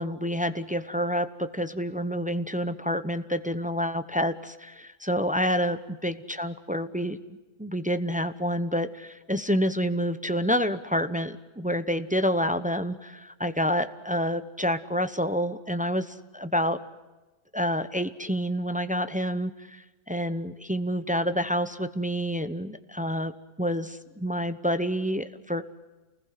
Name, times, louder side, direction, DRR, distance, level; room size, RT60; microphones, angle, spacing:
voice 1, 0.0-7.2 7.6-16.8 17.5-23.3 23.6-25.6, equal, 10° right, 10 dB, 0.4 m, -28 dB
29.5 x 20.5 x 7.6 m, 1.2 s
omnidirectional pair, 1.8 m